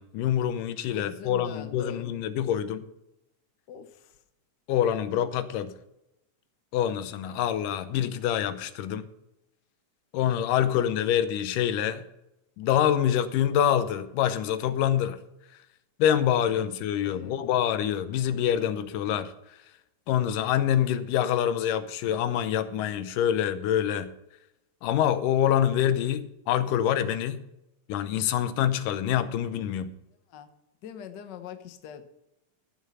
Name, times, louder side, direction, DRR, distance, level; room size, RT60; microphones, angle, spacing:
voice 1, 0.0-2.9 4.7-5.7 6.7-9.1 10.1-12.0 12.6-15.2 16.0-19.3 20.1-24.1 24.8-27.4 27.9-29.9, left 10 dB, 90° left, 2.5 m, -26 dB
voice 2, 0.9-2.1 3.7-4.2 17.0-17.4 30.3-30.5 30.8-32.0, left 8 dB, 70° left, 1.0 m, -42 dB
14.0 x 7.5 x 5.6 m
omnidirectional pair, 3.7 m